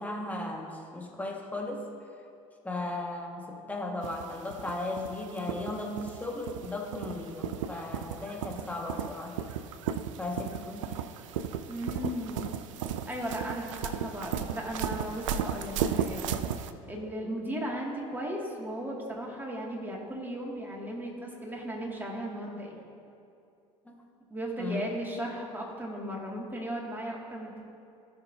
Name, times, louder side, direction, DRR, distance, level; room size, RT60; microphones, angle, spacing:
voice 1, 0.0-1.9 2.6-9.4 10.2-10.9 23.8-24.1 24.6-24.9, left 2 dB, 10° left, 0 dB, 1.7 m, -36 dB
sound 1, 4.0-16.7, right 8 dB, 75° right, 0.5 m, -35 dB
voice 2, 11.7-12.5 13.1-16.4 16.9-22.8 24.3-27.6, equal, 10° right, -2 dB, 2.2 m, -36 dB
17.0 x 5.7 x 2.8 m, 2.6 s
hypercardioid pair, 70°, 16 cm